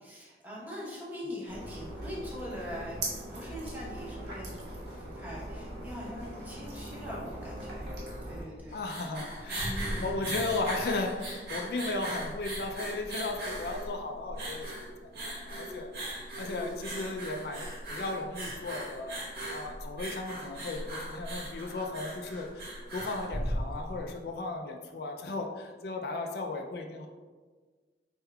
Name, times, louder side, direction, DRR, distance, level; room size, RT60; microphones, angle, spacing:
voice 1, 0.0-3.0 3.3-7.9 8.2-8.8 9.4-10.1 16.6-16.7, equal, 10° right, -6 dB, 0.8 m, -42 dB
sound 1, 1.5-8.4, right 1 dB, 80° right, 1.1 m, -40 dB
sound 2, 8.6-24.0, right 1 dB, 65° right, 1.4 m, -38 dB
voice 2, 8.7-9.6 10.0-14.7 15.0-19.1 19.5-27.1, left 2 dB, 65° left, 3 dB, 0.3 m, -35 dB
4.4 x 3.5 x 2.2 m, 1.4 s
head